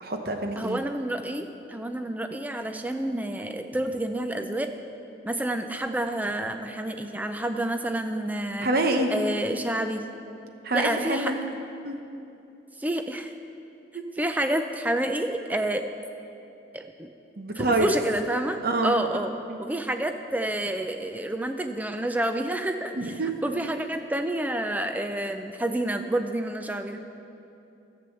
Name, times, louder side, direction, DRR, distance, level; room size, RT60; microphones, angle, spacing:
voice 1, 0.0-0.8 8.6-9.1 10.6-11.4 11.8-12.0 17.4-17.9 18.6-19.0 19.5-19.6 22.9-23.3, right 2 dB, 50° right, 4 dB, 1.0 m, -26 dB
voice 2, 0.6-4.7 5.2-8.7 9.1-10.0 10.7-11.3 12.8-13.3 14.2-15.8 16.7-17.1 17.5-19.3 19.6-23.1 23.4-27.0, right 1 dB, 10° right, 6 dB, 0.5 m, -29 dB
12.0 x 7.8 x 7.0 m, 2.8 s
head